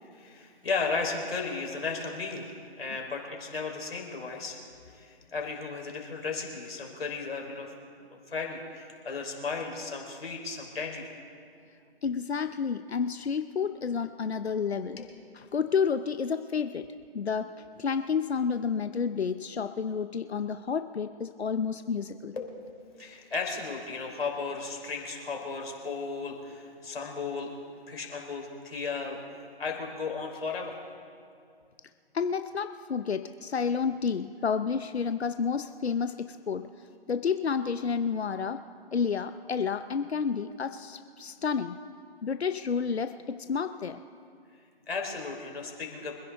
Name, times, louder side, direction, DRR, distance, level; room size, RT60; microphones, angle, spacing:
voice 1, 0.1-4.6 5.0-7.7 8.3-11.1 15.0-15.1 22.3-27.5 27.9-30.8 44.9-46.1, left 4 dB, 70° left, 1 dB, 3.9 m, -35 dB
voice 2, 12.0-15.0 15.3-16.9 17.1-22.3 32.1-36.7 37.1-38.6 38.9-41.8 42.2-44.0, left 6 dB, 85° left, 9 dB, 0.8 m, -30 dB
25.5 x 10.5 x 3.5 m, 2.4 s
figure-of-eight pair, 155°, 31 cm